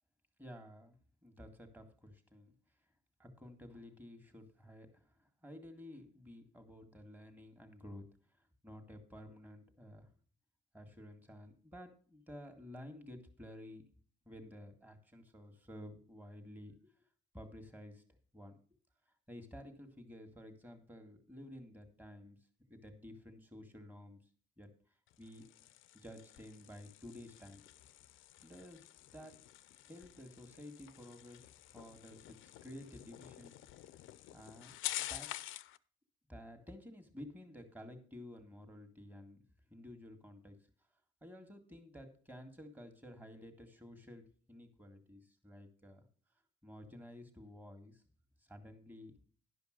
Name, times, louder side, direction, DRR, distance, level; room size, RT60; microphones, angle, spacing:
voice 1, 0.4-1.0 1.2-2.5 3.2-8.1 8.3-10.1 10.7-13.8 14.3-16.9 17.3-18.0 18.3-18.6 19.3-22.4 22.7-24.2 24.6-24.7 25.2-25.4 25.9-27.6 28.4-28.9 29.1-29.4 29.9-33.5 34.3-35.3 36.3-39.4 39.7-40.6 41.2-46.1 46.6-48.0 48.4-49.2, left 1 dB, 10° right, 5 dB, 1.8 m, -52 dB
sound 1, 25.1-35.8, left 14 dB, 80° left, 0.5 m, -48 dB
11.0 x 5.2 x 6.5 m, 0.43 s
cardioid pair, 90°, 20 cm